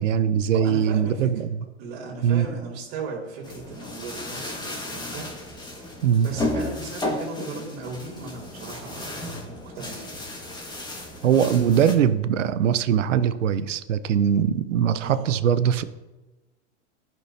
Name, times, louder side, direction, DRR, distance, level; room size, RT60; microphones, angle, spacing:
voice 1, 0.0-1.6 2.2-2.5 6.0-6.3 11.2-15.8, right 8 dB, 85° right, 13 dB, 0.7 m, -21 dB
voice 2, 0.5-1.5 1.8-10.3 11.4-11.7 15.0-15.3, right 3 dB, 60° right, -5 dB, 2.7 m, -37 dB
sound 1, 3.4-12.0, left 1 dB, 10° left, 1.6 m, -34 dB
13.5 x 6.0 x 2.7 m, 1.1 s
hypercardioid pair, 105°, 36 cm